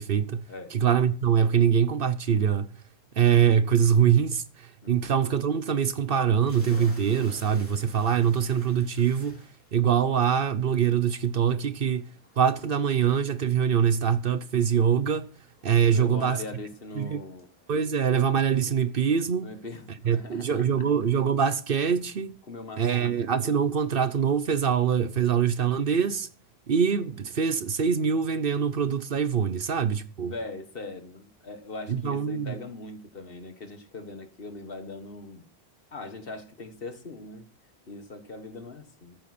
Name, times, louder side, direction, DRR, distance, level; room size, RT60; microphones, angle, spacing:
voice 1, 0.0-2.7 3.2-9.4 9.7-12.1 12.4-15.3 15.6-16.4 17.0-17.2 17.7-19.5 20.0-22.4 22.8-26.3 26.7-30.3 31.9-32.5, right 7 dB, 60° right, 1.0 m, -24 dB
sound 1, 6.4-19.8, left 1 dB, 10° left, 3.3 m, -54 dB
voice 2, 15.9-17.5 19.4-20.6 22.5-23.2 29.9-35.5 35.9-37.5 37.9-39.2, left 3 dB, 60° left, 1.7 m, -41 dB
14.5 x 9.1 x 4.3 m
omnidirectional pair, 1.1 m